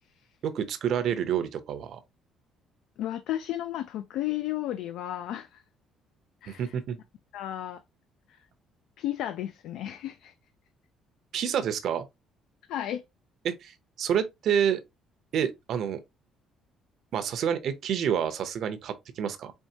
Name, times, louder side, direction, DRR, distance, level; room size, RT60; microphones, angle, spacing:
voice 1, 0.4-2.0 6.5-7.0 11.3-12.1 13.4-14.8 15.3-16.0 17.1-19.5, right 8 dB, 50° right, 0.7 m, -28 dB
voice 2, 3.0-5.6 6.4-6.7 7.3-7.8 8.3-8.4 9.0-10.3 12.7-13.0, left 13 dB, 70° left, 0.3 m, -33 dB
4.5 x 3.2 x 2.8 m
cardioid pair, 165°, 0 cm